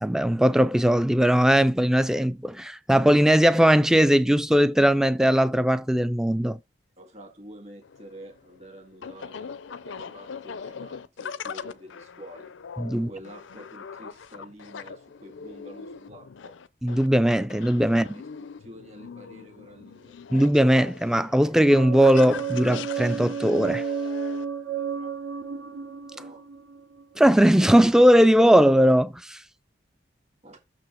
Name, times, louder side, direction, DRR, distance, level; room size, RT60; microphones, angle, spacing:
voice 1, 0.0-6.6 12.8-13.1 16.8-18.1 20.3-23.8 27.2-29.4, equal, 5° right, 0.3 m, -19 dB
voice 2, 7.0-12.6 12.9-16.6 18.0-18.2 18.6-20.2 24.8-25.2 26.1-26.5 30.4-30.6, equal, 35° right, 1.8 m, -47 dB
sound 1, 7.8-24.4, left 6 dB, 80° left, 0.5 m, -41 dB
sound 2, 21.7-27.5, right 6 dB, 70° right, 1.2 m, -32 dB
6.4 x 4.9 x 4.5 m
head